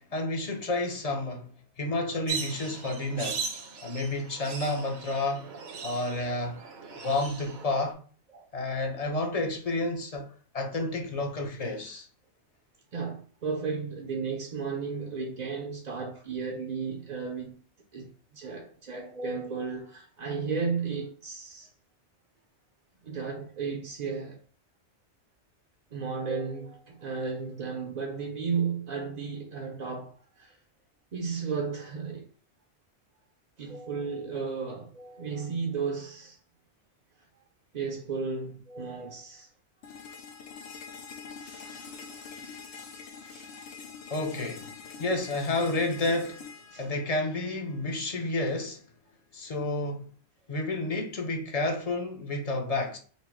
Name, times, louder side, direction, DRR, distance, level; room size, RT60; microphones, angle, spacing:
voice 1, 0.0-3.4 3.8-5.5 5.8-6.6 7.0-8.0 8.5-10.3 10.5-12.1 44.1-44.7 45.0-46.5 46.8-48.8 49.3-50.0 50.5-53.0, left 2 dB, 40° left, 0.7 m, -30 dB
sound 1, 2.3-7.9, right 5 dB, 65° right, 1.0 m, -39 dB
voice 2, 12.9-17.6 17.9-21.7 23.0-24.4 25.9-30.6 31.1-32.3 33.6-36.4 37.7-39.5 41.4-43.9 46.7-46.9, right 5 dB, 50° right, 0.6 m, -34 dB
sound 2, 39.8-47.8, left 6 dB, 75° left, 0.9 m, -45 dB
4.2 x 2.0 x 4.4 m
omnidirectional pair, 1.2 m